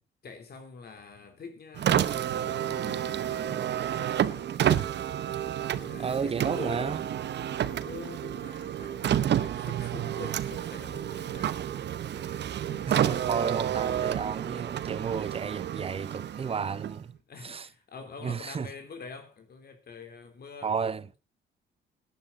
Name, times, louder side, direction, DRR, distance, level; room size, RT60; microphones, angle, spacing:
voice 1, 0.2-4.6 5.7-7.2 7.5-12.4 12.7-13.1 17.3-21.2, left 5 dB, 50° left, 3.3 m, -46 dB
Car, 1.7-17.2, right 10 dB, 60° right, 0.9 m, -30 dB
voice 2, 6.0-7.0 12.9-17.1 17.4-17.7 18.2-18.7 20.6-21.1, right 6 dB, 30° right, 0.6 m, -32 dB
17.5 x 10.5 x 3.9 m
cardioid pair, 90°, 20 cm